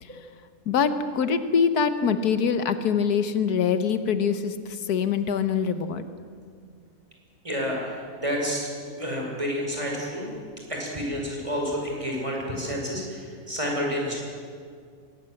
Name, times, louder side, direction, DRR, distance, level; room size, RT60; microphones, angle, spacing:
voice 1, 0.7-6.0, left 6 dB, 85° left, 10 dB, 1.6 m, -24 dB
voice 2, 7.4-8.7 9.0-10.3 10.7-14.2, equal, 20° right, -1 dB, 5.5 m, -29 dB
23.0 x 18.5 x 7.8 m, 2.2 s
omnidirectional pair, 1.6 m